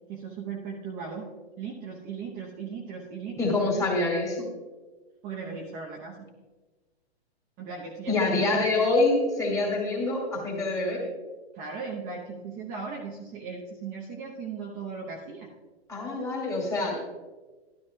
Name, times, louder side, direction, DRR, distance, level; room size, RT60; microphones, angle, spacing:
voice 1, 0.1-1.3 1.6-3.9 5.2-6.3 7.6-8.9 11.5-15.5, right 5 dB, 25° right, -3 dB, 1.0 m, -37 dB
voice 2, 3.4-4.4 8.1-11.0 15.9-17.0, left 2 dB, 10° left, -2 dB, 2.5 m, -26 dB
12.5 x 12.5 x 2.4 m, 1.3 s
hypercardioid pair, 145°, 33 cm